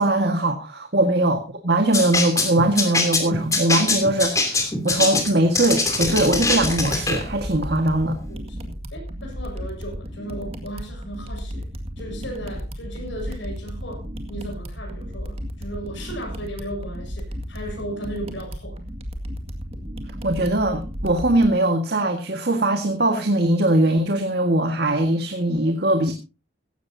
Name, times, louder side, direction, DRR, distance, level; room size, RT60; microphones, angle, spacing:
voice 1, 0.0-8.2 20.2-26.1, right 1 dB, 55° right, 5 dB, 1.7 m, -21 dB
sound 1, 1.9-7.2, left 3 dB, 15° left, 3.0 m, -23 dB
sound 2, 6.1-21.5, equal, 30° right, 2.0 m, -34 dB
voice 2, 8.3-11.7 12.0-18.8, right 1 dB, 70° left, 2 dB, 6.9 m, -36 dB
16.5 x 15.0 x 2.8 m, 0.30 s
head